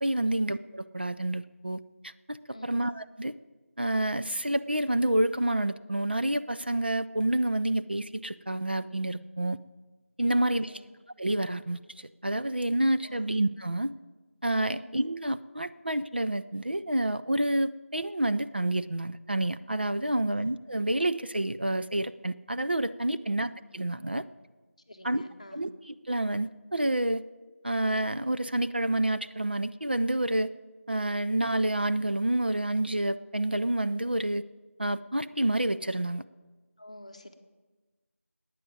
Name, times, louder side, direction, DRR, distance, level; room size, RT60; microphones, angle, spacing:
voice 1, 0.0-2.4 2.6-3.3 3.8-9.6 10.2-10.7 11.2-13.9 14.4-24.2 25.0-25.2 25.5-27.2 27.6-30.5 30.9-34.5 34.8-36.2, right 1 dB, 45° right, 11 dB, 0.4 m, -28 dB
voice 2, 2.5-2.8 10.3-10.9 13.0-13.3 14.7-14.9 23.3-23.4 24.9-25.6 36.8-37.3, left 1 dB, 25° left, 6 dB, 0.9 m, -48 dB
13.5 x 9.2 x 9.1 m, 1.3 s
figure-of-eight pair, 175°, 8 cm